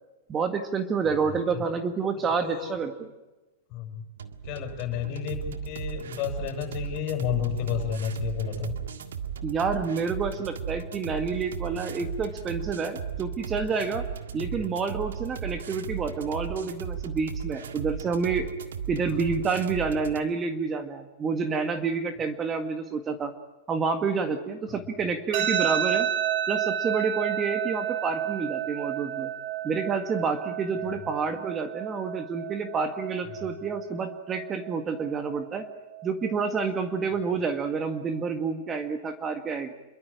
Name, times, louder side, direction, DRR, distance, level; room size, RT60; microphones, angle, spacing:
voice 1, 0.3-3.1 9.4-14.1 14.3-18.5 18.9-23.3 23.7-26.1 26.5-29.3 29.6-35.6 36.0-39.7, right 5 dB, 20° right, 7 dB, 1.8 m, -29 dB
voice 2, 1.1-1.6 2.4-2.8 3.7-4.0 4.4-8.7 14.4-14.5 19.1-19.2 30.9-31.0 33.3-33.4, left 9 dB, 45° left, 5 dB, 6.6 m, -32 dB
sound 1, 4.2-20.2, right 7 dB, 90° right, 1.8 m, -36 dB
sound 2, 25.3-38.3, right 10 dB, 50° right, 2.0 m, -32 dB
28.5 x 13.0 x 9.9 m, 1.1 s
hypercardioid pair, 135°, 0 cm